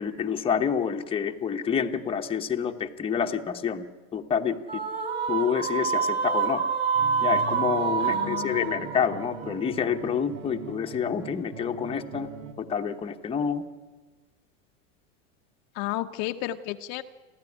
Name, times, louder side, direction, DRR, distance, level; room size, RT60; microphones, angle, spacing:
voice 1, 0.0-3.9 4.1-4.8 5.3-6.6 7.2-12.3 12.6-13.6, left 7 dB, 15° left, 4 dB, 1.0 m, -28 dB
sound 1, 4.7-10.1, right 6 dB, 30° right, 3.5 m, -27 dB
sound 2, 6.9-12.5, right 5 dB, 80° right, 2.9 m, -41 dB
voice 2, 8.0-8.8 15.7-17.0, left 15 dB, 45° left, 6 dB, 0.8 m, -33 dB
30.0 x 12.0 x 9.8 m, 1.3 s
supercardioid pair, 145°, 38 cm